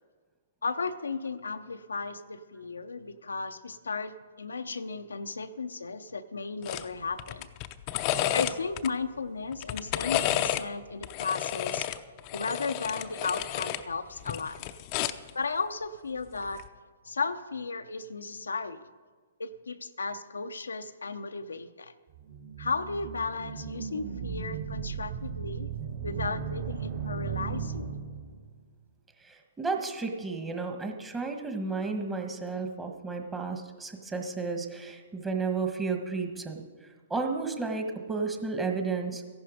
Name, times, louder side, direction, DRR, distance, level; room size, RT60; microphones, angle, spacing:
voice 1, 0.6-7.5 8.3-11.9 12.3-14.6 15.3-16.6 17.0-18.8 19.4-21.9 22.6-25.7 26.0-27.9, left 4 dB, 85° left, 8 dB, 0.7 m, -35 dB
sound 1, 6.6-6.9 7.2-8.9 9.5-10.7 11.0-13.8 14.2-15.3 16.5-16.7, left 12 dB, 35° left, 0.6 m, -31 dB
sound 2, 22.1-28.5, right 7 dB, 50° right, 5.0 m, -36 dB
voice 2, 29.2-36.6 37.1-39.2, right 4 dB, 10° right, 4 dB, 1.4 m, -32 dB
14.5 x 11.0 x 5.0 m, 1.5 s
hypercardioid pair, 125°, 0 cm